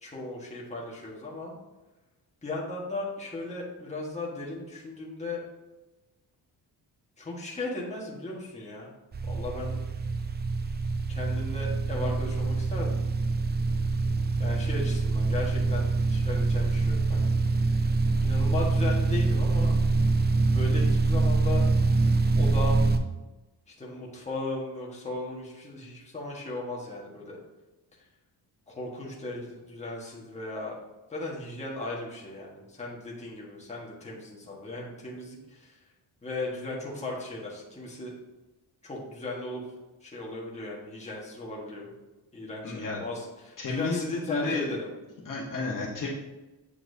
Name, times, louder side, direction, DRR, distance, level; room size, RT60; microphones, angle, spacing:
voice 1, 0.0-1.5 2.4-5.4 7.2-8.9 9.2-9.8 11.1-13.0 14.4-17.3 17.7-17.9 18.2-19.8 20.5-21.6 22.3-22.9 23.8-27.4 28.7-30.8 31.1-35.7 36.2-38.1 38.8-39.6 40.0-41.9 42.3-44.9, left 2 dB, 15° left, -4 dB, 1.5 m, -36 dB
sound 1, 9.1-23.0, right 3 dB, 25° right, 0.4 m, -25 dB
voice 2, 42.6-43.0 43.6-44.7 45.2-46.1, left 3 dB, 50° left, -4 dB, 1.3 m, -31 dB
8.1 x 5.8 x 2.8 m, 1.1 s
wide cardioid pair, 125°, 40 cm